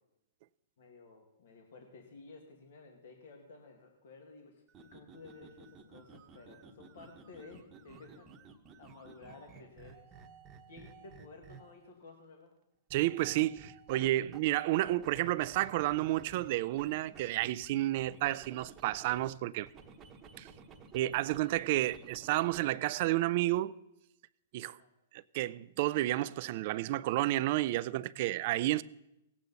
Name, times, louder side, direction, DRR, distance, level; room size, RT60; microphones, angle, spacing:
voice 1, 0.8-8.3 8.8-10.1 10.7-12.5 24.7-24.9, left 3 dB, 70° left, 1.9 m, -54 dB
sound 1, 4.7-11.9 12.9-14.6 14.9-19.3 19.6-22.7, right 5 dB, 20° right, 1.0 m, -54 dB
voice 2, 12.9-19.7 20.4-20.5 20.9-23.7 24.5-24.8 25.1-28.8, right 16 dB, 45° right, 0.4 m, -31 dB
18.0 x 8.4 x 4.1 m
hypercardioid pair, 145°, 0 cm